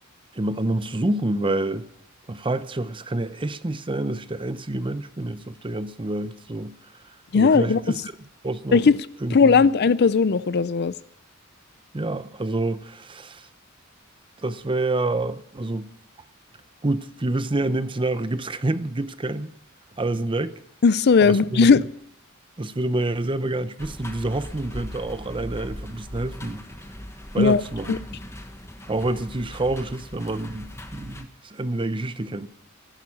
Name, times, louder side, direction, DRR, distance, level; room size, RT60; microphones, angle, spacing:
voice 1, 0.3-1.9 2.3-6.8 7.3-8.0 8.4-8.8 9.2-9.7 11.9-13.5 14.4-15.9 16.8-19.5 20.0-20.5 21.2-21.7 22.6-26.6 27.3-28.0 28.9-32.5, right 2 dB, 25° right, 0.7 m, -27 dB
voice 2, 7.3-7.8 8.7-9.0 9.3-10.9 20.8-21.8 27.4-27.6 27.9-28.0, left 5 dB, 50° left, 0.5 m, -17 dB
sound 1, 23.8-31.2, equal, 15° left, 1.2 m, -39 dB
15.5 x 11.5 x 6.4 m
head